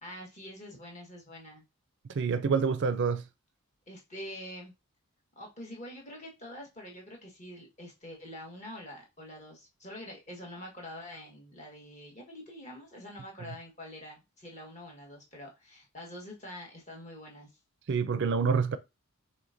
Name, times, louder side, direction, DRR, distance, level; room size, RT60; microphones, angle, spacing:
voice 1, 0.0-1.6 3.9-4.7 5.4-17.5, left 1 dB, 35° left, 1.4 m, -45 dB
voice 2, 2.1-3.3 13.5-13.6 17.9-18.8, right 5 dB, 55° right, 0.4 m, -27 dB
5.0 x 3.3 x 2.6 m
head